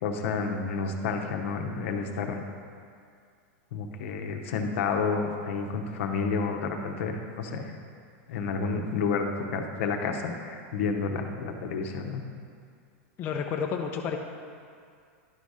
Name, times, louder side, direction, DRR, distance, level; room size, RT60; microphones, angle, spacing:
voice 1, 0.0-2.4 3.7-7.7 8.3-12.2, left 5 dB, 70° left, 3 dB, 0.8 m, -30 dB
voice 2, 13.2-14.2, left 6 dB, 30° left, 2 dB, 0.5 m, -30 dB
11.0 x 4.1 x 4.9 m, 2.3 s
supercardioid pair, 145°, 7 cm